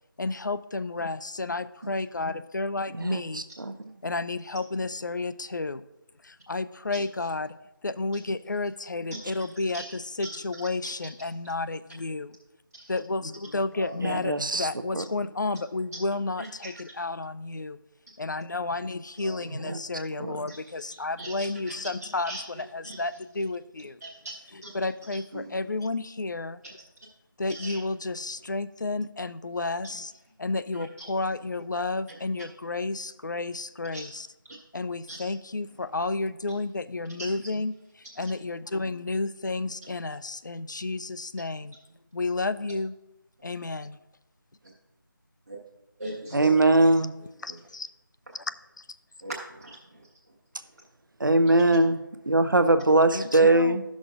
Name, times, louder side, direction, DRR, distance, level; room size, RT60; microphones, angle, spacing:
voice 1, 0.2-3.4 4.0-5.8 6.2-7.5 7.8-12.4 12.9-17.8 18.2-24.0 24.5-26.6 27.4-30.1 30.4-34.3 34.7-41.8 42.1-43.0 43.4-44.0 46.3-46.4 46.8-46.9 47.4-47.9 48.3-48.4 48.8-49.0 53.1-53.8, left 3 dB, 60° left, 14 dB, 0.4 m, -31 dB
voice 2, 3.0-3.7 14.0-14.7 14.9-15.0 20.2-20.3 46.3-47.1 51.2-52.0 52.3-53.8, right 2 dB, 65° right, 10 dB, 0.6 m, -21 dB
voice 3, 16.4-16.7 19.2-19.5 20.5-20.6 21.2-21.8 22.2-22.4 22.8-23.0 24.0-24.7 25.3-25.6 27.5-27.8 30.7-30.9 33.9-34.1 35.1-35.3 37.3-37.4 45.5-45.6 46.0-46.5 47.5-47.6 49.2-50.3 51.6-51.8, right 1 dB, 45° right, -5 dB, 1.2 m, -40 dB
13.5 x 6.2 x 2.5 m, 0.93 s
figure-of-eight pair, 165°, 11 cm